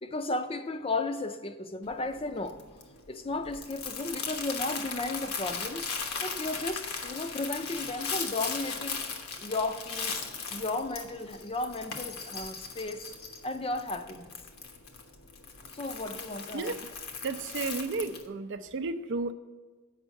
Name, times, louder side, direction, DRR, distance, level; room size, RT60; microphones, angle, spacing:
voice 1, 0.0-2.6 3.1-5.9 6.2-13.0 13.4-14.3 15.7-16.7, left 2 dB, 25° left, 0.5 m, -34 dB
Crumpling crinkling, 1.8-18.3, left 5 dB, 85° left, 1.2 m, -38 dB
voice 2, 17.2-19.3, right 3 dB, 55° right, 0.5 m, -33 dB
8.1 x 5.5 x 6.3 m
head